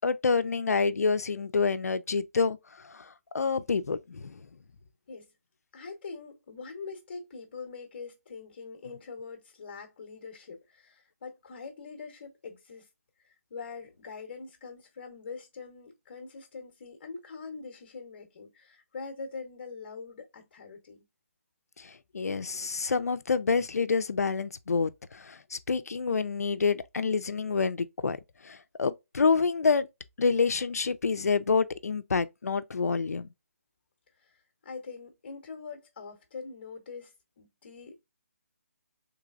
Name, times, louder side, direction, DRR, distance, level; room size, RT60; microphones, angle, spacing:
voice 1, 0.0-4.5 21.8-28.2 28.4-29.9 30.2-33.3, left 4 dB, 80° left, 0.5 m, -28 dB
voice 2, 5.7-12.9 13.2-21.1 34.2-38.0, left 4 dB, 40° left, 1.0 m, -43 dB
3.7 x 3.3 x 2.4 m
hypercardioid pair, 160°, 8 cm